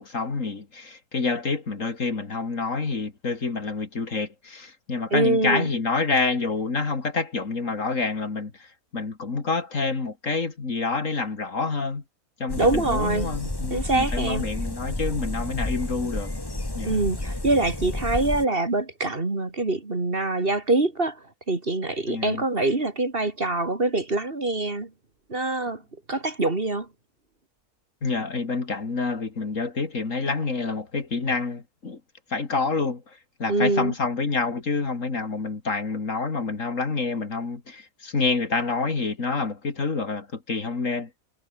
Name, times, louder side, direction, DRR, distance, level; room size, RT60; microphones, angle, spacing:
voice 1, 0.0-12.0 12.4-16.3 16.7-17.0 22.1-22.4 28.0-32.0 32.3-41.1, left 4 dB, 55° left, 2.9 m, -28 dB
voice 2, 5.1-5.7 12.6-13.3 13.7-14.4 16.8-21.2 21.5-24.9 25.3-25.8 26.1-26.9 33.5-33.9, right 2 dB, 35° right, 2.7 m, -24 dB
sound 1, 12.5-18.5, left 2 dB, 15° left, 2.1 m, -31 dB
omnidirectional pair, 1.6 m